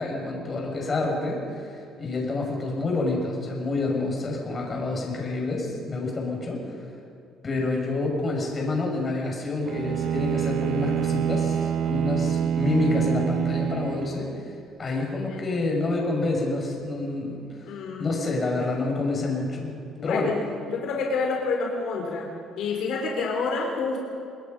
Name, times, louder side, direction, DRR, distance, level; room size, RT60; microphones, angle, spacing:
voice 1, 0.0-6.8 7.4-14.4 14.8-17.7 18.0-19.8 20.0-20.3, left 2 dB, 30° left, 0 dB, 6.1 m, -28 dB
Bowed string instrument, 9.6-14.5, right 9 dB, 65° right, 0.7 m, -26 dB
voice 2, 17.7-18.1 20.0-22.3 22.6-24.1, left 4 dB, 75° left, 0 dB, 3.8 m, -28 dB
28.0 x 20.5 x 5.4 m, 2.5 s
cardioid pair, 125°, 0 cm